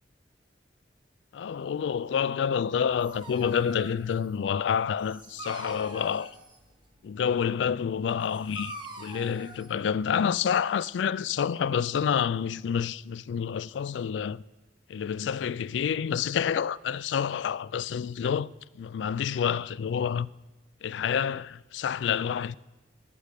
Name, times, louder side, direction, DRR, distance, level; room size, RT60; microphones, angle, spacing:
voice 1, 1.3-6.3 7.0-14.4 14.9-18.5 18.8-20.3 20.8-22.6, left 7 dB, 80° left, 0.3 m, -28 dB
Dog, 2.7-10.6, right 2 dB, 25° right, 1.3 m, -46 dB
17.5 x 6.5 x 6.7 m
head